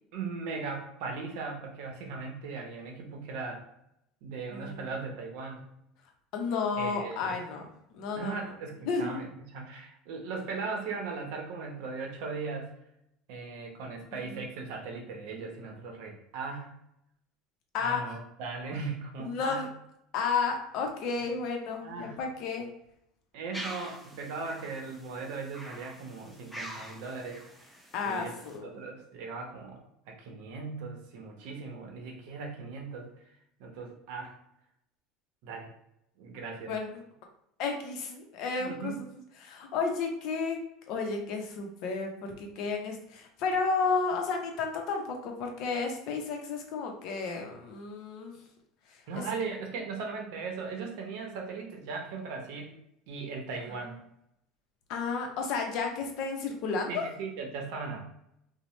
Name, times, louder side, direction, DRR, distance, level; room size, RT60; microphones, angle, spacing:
voice 1, 0.1-3.6 4.2-5.7 6.8-7.4 8.1-9.3 9.5-12.7 13.3-16.7 17.8-19.7 21.2-21.3 21.8-22.2 23.3-27.4 28.0-28.3 28.6-29.8 30.1-33.3 33.6-34.4 35.4-35.7 36.2-36.7 38.6-39.0 49.1-52.7 53.1-54.0 56.9-58.0, right 4 dB, 70° right, 2 dB, 0.7 m, -38 dB
voice 2, 4.5-4.9 6.3-8.5 8.9-9.2 14.3-14.4 17.7-18.0 19.2-19.7 20.1-22.7 27.9-28.7 36.7-37.0 37.6-40.6 40.9-48.4 48.9-49.2 54.9-57.1, left 4 dB, 60° left, 3 dB, 0.6 m, -32 dB
sound 1, 23.5-28.6, equal, 5° left, 0.5 m, -45 dB
2.8 x 2.0 x 3.1 m, 0.79 s
cardioid pair, 135°, 0 cm